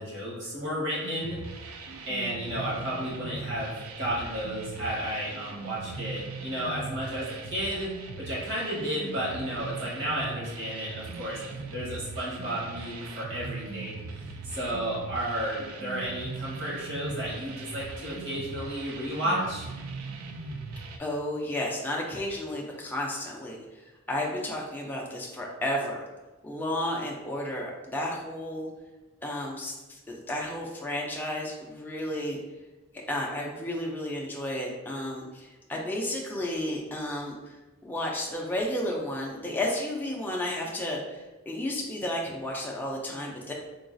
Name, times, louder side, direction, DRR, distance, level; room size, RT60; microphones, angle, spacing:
voice 1, 0.0-1.4 2.1-7.9 8.2-11.4 11.7-14.0 14.5-19.7, equal, 55° right, -6 dB, 1.3 m, -32 dB
sound 1, 1.0-21.0, right 4 dB, 80° right, 0.4 m, -40 dB
voice 2, 21.0-26.0 26.4-28.7 29.2-32.4 33.1-37.6 37.8-43.5, left 1 dB, 10° left, -2 dB, 0.4 m, -32 dB
3.8 x 2.3 x 2.5 m, 1.1 s
head